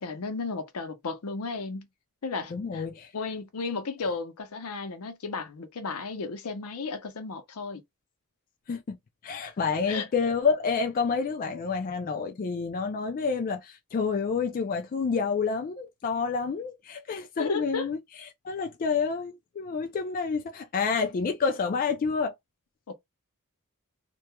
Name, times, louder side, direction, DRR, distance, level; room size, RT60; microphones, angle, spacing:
voice 1, 0.0-1.9 2.2-2.8 3.1-7.8 9.4-9.5 9.9-10.1 17.4-17.9 22.9-23.0, left 4 dB, 80° left, 0.6 m, -34 dB
voice 2, 2.5-3.1 8.7-9.0 9.2-18.0 18.4-22.3, left 5 dB, 40° left, 0.3 m, -28 dB
2.9 x 2.2 x 2.2 m
head